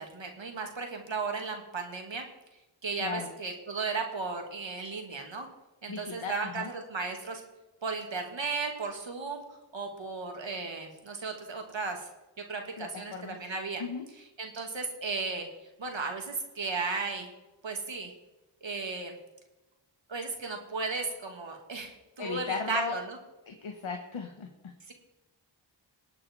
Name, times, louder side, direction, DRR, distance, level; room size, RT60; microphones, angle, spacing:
voice 1, 0.0-2.2 2.8-5.5 5.8-7.4 7.8-9.4 9.7-12.1 12.5-13.8 14.4-15.5 15.8-17.3 17.6-18.1 18.6-19.1 20.1-23.2 24.9-25.0, right 4 dB, 70° right, 2 dB, 2.7 m, -35 dB
voice 2, 3.0-3.3 5.9-6.7 12.8-13.4 13.8-14.0 22.2-23.0 23.5-24.7, left 5 dB, 90° left, 3 dB, 1.5 m, -36 dB
19.5 x 8.5 x 4.7 m, 1.0 s
cardioid pair, 50°, 47 cm